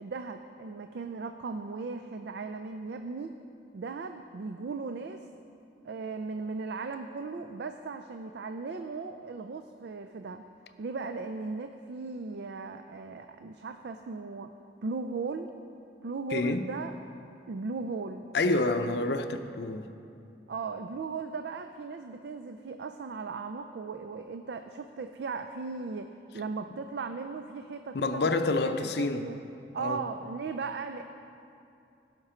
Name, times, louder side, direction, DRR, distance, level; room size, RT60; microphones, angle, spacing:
voice 1, 0.0-3.4 3.7-5.2 5.8-10.4 10.8-14.5 14.8-15.5 16.0-16.9 17.5-18.2 20.5-28.3 28.8-29.4 29.7-31.0, right 4 dB, 65° right, 0.4 m, -37 dB
voice 2, 16.3-16.7 18.3-19.9 27.9-29.3 29.8-30.0, left 2 dB, 65° left, 0.6 m, -28 dB
17.0 x 5.9 x 4.4 m
head